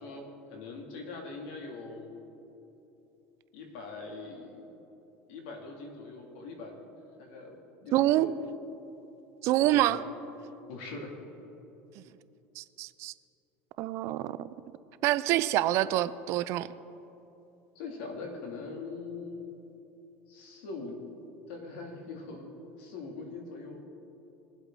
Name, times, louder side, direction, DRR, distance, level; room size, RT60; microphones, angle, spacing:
voice 1, 0.0-2.1 3.5-4.7 5.3-6.8 7.2-8.6 9.7-10.0 10.7-11.1 17.7-19.4 20.3-21.0 21.5-22.5 22.8-23.8, left 3 dB, 80° left, 1 dB, 2.4 m, -42 dB
voice 2, 7.9-8.3 9.4-10.0 12.0-12.1 12.6-13.1 13.8-14.5 15.0-16.7, right 14 dB, 55° right, 15 dB, 0.4 m, -26 dB
21.0 x 8.1 x 3.8 m, 2.9 s
supercardioid pair, 125°, 6 cm